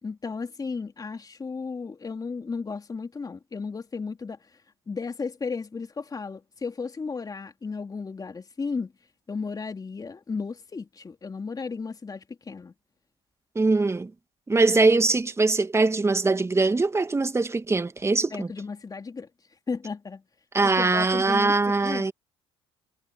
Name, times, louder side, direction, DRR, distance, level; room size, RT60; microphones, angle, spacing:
voice 1, 0.0-4.4 4.9-8.9 9.3-12.7 18.3-19.3 19.7-20.2 20.6-22.1, left 4 dB, 30° left, 3.4 m, -34 dB
voice 2, 13.6-14.1 14.5-18.5 20.5-22.1, right 3 dB, 20° right, 2.4 m, -22 dB
hypercardioid pair, 60°, 13 cm